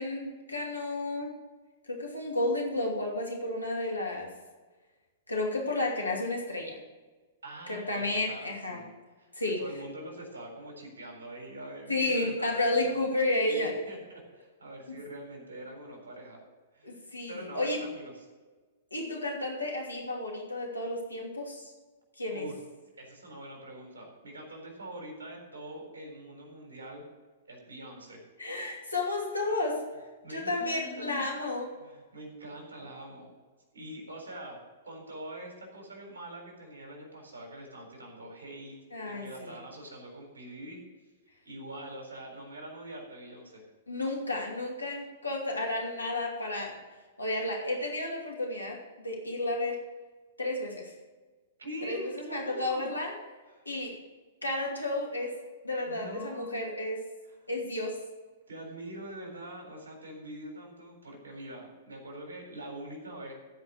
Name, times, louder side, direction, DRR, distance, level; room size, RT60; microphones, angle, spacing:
voice 1, 0.0-1.4 1.9-4.3 5.3-6.8 7.7-8.8 9.3-9.6 11.9-13.8 14.9-15.0 16.8-17.8 18.9-21.7 22.2-22.5 28.4-29.9 30.3-31.7 38.9-39.6 43.9-46.8 47.2-49.9 50.4-50.9 51.9-53.1 53.6-54.0 54.4-57.0 57.5-58.0, left 2 dB, 90° left, 0 dB, 2.7 m, -32 dB
voice 2, 7.4-8.9 9.2-13.0 13.5-16.4 16.7-16.9 17.3-18.1 22.3-22.6 23.0-27.0 27.5-28.2 30.2-31.3 31.8-33.3 33.7-38.8 39.0-40.8 41.4-43.6 51.6-52.9 53.5-53.6 55.8-56.6 57.2-57.4 58.5-63.3, right 1 dB, 75° right, 1 dB, 4.0 m, -44 dB
15.5 x 5.3 x 6.6 m, 1.3 s
figure-of-eight pair, 110°, 0 cm